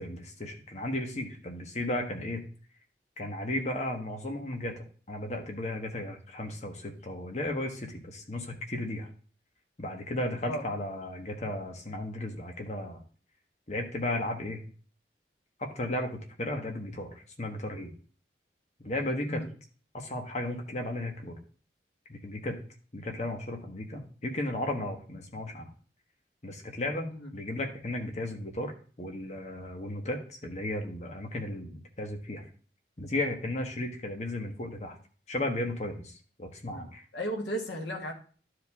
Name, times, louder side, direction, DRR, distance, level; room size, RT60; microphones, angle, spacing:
voice 1, 0.0-2.4 3.2-9.1 9.8-13.0 13.7-14.6 15.6-17.9 18.8-19.4 19.9-21.4 22.1-22.6 22.9-25.7 26.4-28.7 29.0-32.4 33.0-35.0 35.3-37.0, left 1 dB, 40° left, 4 dB, 1.4 m, -35 dB
voice 2, 36.7-38.1, equal, 85° left, 2 dB, 1.9 m, -35 dB
11.5 x 5.0 x 3.5 m, 0.41 s
head